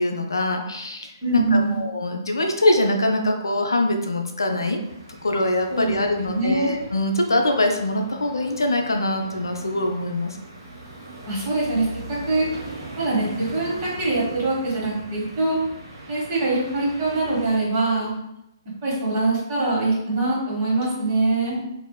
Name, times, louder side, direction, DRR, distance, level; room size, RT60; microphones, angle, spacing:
voice 1, 0.0-4.8 5.2-10.4 21.5-21.6, left 1 dB, 75° left, 4 dB, 0.4 m, -23 dB
voice 2, 1.2-1.8 5.7-6.7 11.3-11.8 12.3-12.5 13.0-15.5 16.1-18.1 18.8-21.6, right 2 dB, 40° right, -5 dB, 1.3 m, -23 dB
sound 1, 4.8-17.6, right 2 dB, 60° right, 1.1 m, -41 dB
2.9 x 2.5 x 2.3 m, 0.83 s
figure-of-eight pair, 125°, 2 cm